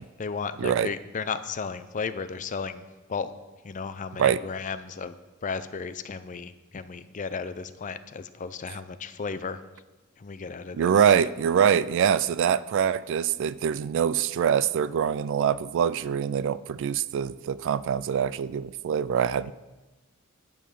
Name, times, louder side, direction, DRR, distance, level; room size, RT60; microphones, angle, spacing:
voice 1, 0.2-3.3 3.6-5.2 5.4-9.6 10.2-11.3, left 5 dB, 35° left, 12 dB, 0.5 m, -34 dB
voice 2, 10.8-19.5, right 8 dB, 60° right, 17 dB, 0.3 m, -24 dB
10.5 x 5.6 x 6.4 m, 1.2 s
head